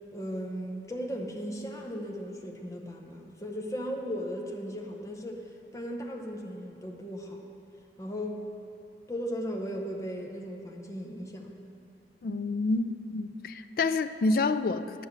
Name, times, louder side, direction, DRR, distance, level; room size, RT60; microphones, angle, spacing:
voice 1, 0.1-5.5 5.7-7.4 8.0-8.4 9.1-11.5, equal, 20° left, 1 dB, 0.7 m, -36 dB
voice 2, 12.2-15.1, left 3 dB, 55° left, 11 dB, 0.3 m, -28 dB
10.0 x 5.7 x 7.2 m, 2.6 s
head